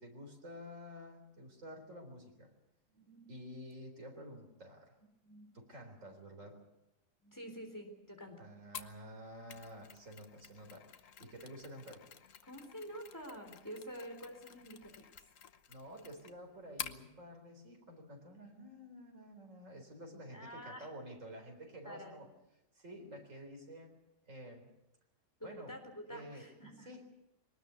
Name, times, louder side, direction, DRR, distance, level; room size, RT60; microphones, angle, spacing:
voice 1, 0.0-2.5 3.3-5.0 5.5-6.6 8.4-12.1 15.7-22.3 22.7-24.0 24.3-24.7 25.4-25.8 26.1-26.5 26.8-27.0, equal, 80° right, 3 dB, 4.4 m, -50 dB
voice 2, 2.9-3.3 5.2-5.5 7.2-8.5 12.5-15.1 20.3-20.9 21.8-22.3 25.4-26.9, equal, 15° left, 3 dB, 3.9 m, -48 dB
Mechanisms, 8.7-17.0, left 8 dB, 85° left, 1.4 m, -50 dB
22.0 x 19.5 x 8.2 m, 0.90 s
omnidirectional pair, 1.3 m